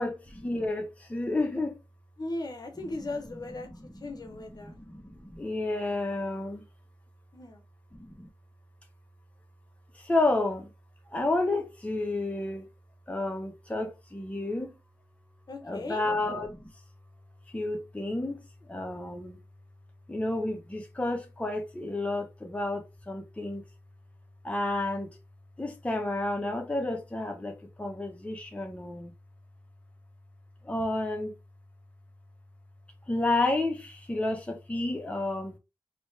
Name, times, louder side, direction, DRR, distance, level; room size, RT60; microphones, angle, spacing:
voice 1, 0.0-1.8 4.6-6.6 7.9-8.3 10.0-10.7 11.1-12.6 13.1-14.7 15.6-16.7 17.5-18.4 18.7-19.4 20.1-23.6 24.4-25.1 25.6-27.5 27.8-29.1 30.6-31.3 33.1-35.5, left 2 dB, 15° left, 0.8 m, -31 dB
voice 2, 2.2-3.7 4.0-4.8 7.3-7.6 15.5-16.0, left 2 dB, 45° left, 0.9 m, -37 dB
3.0 x 2.8 x 3.1 m
cardioid pair, 60°, 9 cm